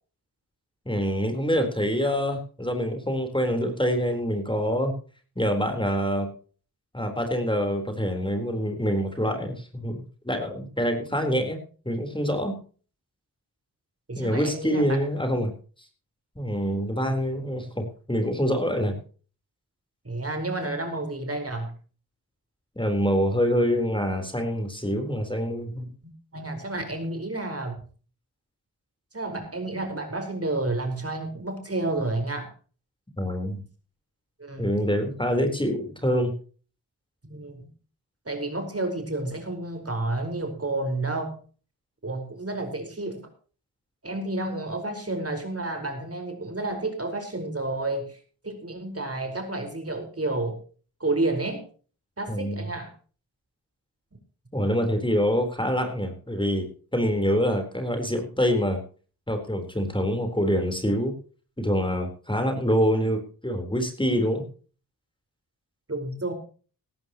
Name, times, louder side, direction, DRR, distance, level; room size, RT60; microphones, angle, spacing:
voice 1, 0.9-4.9 5.4-6.3 6.9-11.6 11.8-12.6 14.1-15.5 16.4-19.0 22.8-25.9 33.2-33.6 34.6-36.3 52.3-52.7 54.5-56.7 56.9-58.8 59.3-61.1 61.6-64.4, equal, 15° left, 5 dB, 4.0 m, -25 dB
voice 2, 14.1-15.0 17.0-17.1 20.0-21.8 26.0-27.8 29.1-32.5 34.4-34.7 37.2-37.7 38.2-41.4 42.0-43.3 44.0-48.2 48.4-50.6 51.0-51.6 52.2-52.9 65.9-66.3, right 2 dB, 35° right, 5 dB, 4.8 m, -30 dB
18.0 x 14.0 x 3.0 m, 0.39 s
wide cardioid pair, 60°, 39 cm